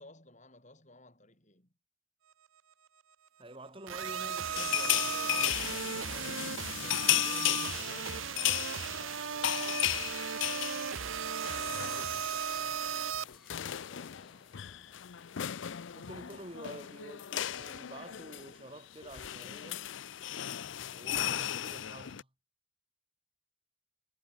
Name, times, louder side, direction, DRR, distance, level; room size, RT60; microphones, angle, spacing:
voice 1, 0.0-1.7 6.7-11.0 11.6-15.9, left 1 dB, 35° left, 7.8 m, -56 dB
voice 2, 3.4-6.5 15.9-19.9 20.9-22.3, right 1 dB, 25° right, 5.6 m, -49 dB
sound 1, 3.9-13.2, right 7 dB, 75° right, 0.9 m, -36 dB
sound 2, 4.6-12.4 12.7-12.9 13.1-22.2, left 13 dB, 65° left, 0.5 m, -35 dB
sound 3, 5.8-16.5, equal, ahead, 7.2 m, -60 dB
head